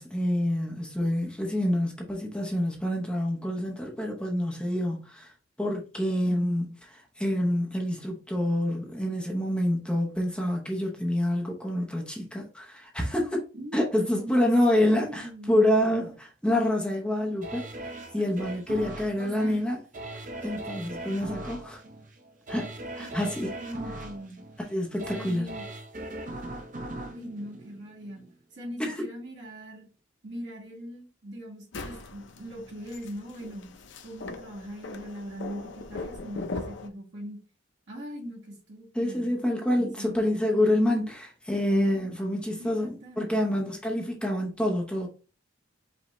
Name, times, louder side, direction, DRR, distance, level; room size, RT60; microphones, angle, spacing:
voice 1, 0.0-5.3 5.6-13.4 13.7-19.8 20.4-21.8 22.5-23.5 24.7-25.5 28.8-28.9 38.9-45.1, left 1 dB, 5° left, 0.7 m, -27 dB
voice 2, 6.3-6.6 13.5-13.8 14.1-15.7 18.7-18.9 19.2-19.6 23.0-23.1 23.5-24.4 24.9-25.6 27.1-28.2 28.5-29.9 30.2-33.7 34.0-37.4 37.9-39.3 39.8-40.2 42.6-43.3, equal, 65° right, 1.6 m, -41 dB
sound 1, 17.4-28.4 28.8-28.9, right 1 dB, 40° right, 0.6 m, -40 dB
sound 2, 31.7-36.9, left 3 dB, 65° left, 0.5 m, -40 dB
5.1 x 2.7 x 3.0 m
head